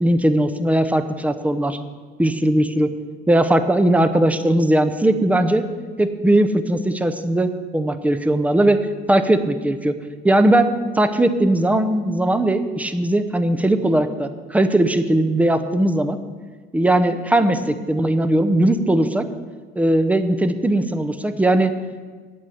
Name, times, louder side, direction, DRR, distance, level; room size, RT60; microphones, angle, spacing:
voice 1, 0.0-1.8 2.2-2.9 3.3-5.7 6.0-8.8 9.1-9.9 10.2-16.2 16.7-19.3 19.8-21.7, right 1 dB, 10° right, 9 dB, 0.6 m, -19 dB
9.0 x 8.6 x 7.0 m, 1.5 s
cardioid pair, 125°, 18 cm